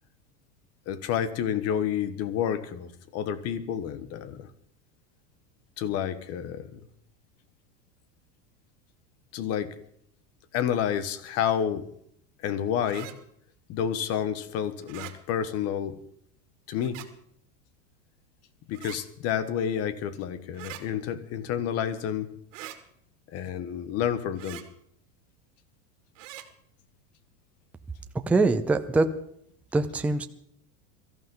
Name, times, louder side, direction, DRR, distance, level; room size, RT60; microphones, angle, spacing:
voice 1, 0.9-4.5 5.8-6.8 9.3-9.8 10.5-11.9 12.4-13.1 13.7-16.0 16.7-17.0 18.7-22.3 23.3-24.6, left 9 dB, 40° left, 13 dB, 1.4 m, -29 dB
sound 1, 12.8-13.2 14.8-15.2 16.8-17.1 18.7-19.0 20.5-20.8 22.5-22.8 24.4-24.7 26.2-26.5, right 14 dB, 80° right, 2.0 m, -42 dB
voice 2, 28.3-29.1 29.7-30.3, right 3 dB, 5° right, 8 dB, 0.5 m, -23 dB
22.5 x 14.5 x 3.9 m, 0.68 s
supercardioid pair, 145°, 37 cm